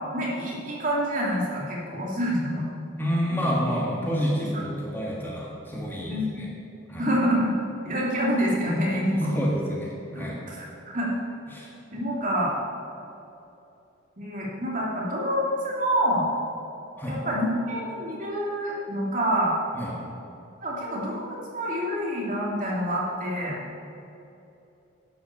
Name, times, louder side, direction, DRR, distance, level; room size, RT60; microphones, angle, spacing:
voice 1, 0.1-2.7 3.3-3.5 4.5-4.9 6.1-6.4 7.0-7.5 7.8-9.3 10.1-10.7 10.9-11.1 11.9-12.5 14.2-16.3 17.1-19.5 20.6-23.6, equal, 40° right, -4 dB, 2.6 m, -27 dB
voice 2, 3.0-6.5 6.9-7.1 9.1-10.4 11.5-11.7 17.0-17.2 19.7-19.9, equal, 10° left, -4 dB, 1.7 m, -28 dB
11.0 x 8.1 x 7.1 m, 2.8 s
head